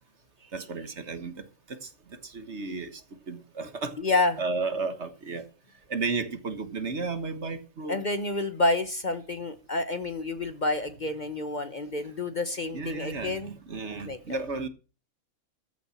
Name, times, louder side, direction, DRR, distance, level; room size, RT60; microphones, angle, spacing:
voice 1, 0.5-3.0 3.3-4.0 4.4-5.5 5.9-8.0 12.7-14.7, right 4 dB, 55° right, 1.5 m, -33 dB
voice 2, 4.0-4.4 7.9-13.6 13.9-14.4, left 2 dB, 35° left, 1.2 m, -29 dB
14.5 x 7.0 x 7.2 m
omnidirectional pair, 1.5 m